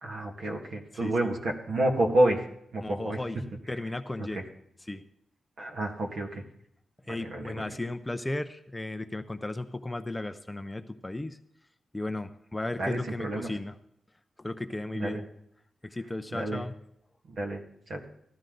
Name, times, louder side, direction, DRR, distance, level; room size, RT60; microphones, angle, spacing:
voice 1, 0.0-2.4 2.7-3.2 5.6-6.4 7.1-7.7 12.8-13.5 14.9-15.2 16.3-16.6 17.4-17.6 17.9-18.1, right 1 dB, 70° right, 1 dB, 1.8 m, -29 dB
voice 2, 2.8-4.4 4.8-5.0 7.1-11.4 11.9-13.8 14.4-15.2 15.8-16.7, left 2 dB, 15° left, 10 dB, 0.5 m, -35 dB
15.5 x 12.0 x 3.9 m, 0.72 s
wide cardioid pair, 130°, 0 cm